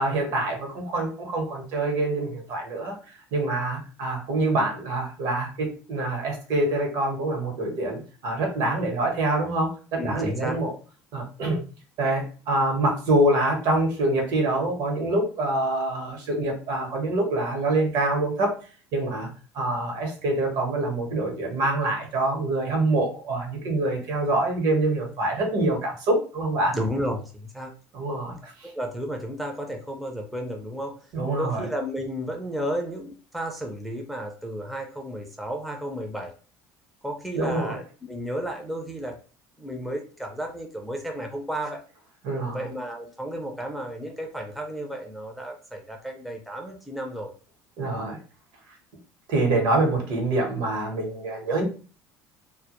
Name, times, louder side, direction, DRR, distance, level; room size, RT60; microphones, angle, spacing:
voice 1, 0.0-2.9 3.3-10.7 11.1-11.6 12.0-18.6 18.9-19.3 19.5-26.8 27.9-28.4 28.6-28.7 31.1-31.7 37.3-37.8 42.2-42.7 47.8-48.2 49.3-51.6, right 2 dB, 65° right, 2 dB, 0.9 m, -25 dB
voice 2, 10.0-10.6 26.7-27.7 28.6-31.0 31.4-36.3 37.0-39.2 39.6-41.8 42.5-47.3, equal, ahead, 2 dB, 0.4 m, -33 dB
2.1 x 2.0 x 2.8 m, 0.37 s
supercardioid pair, 115°, 7 cm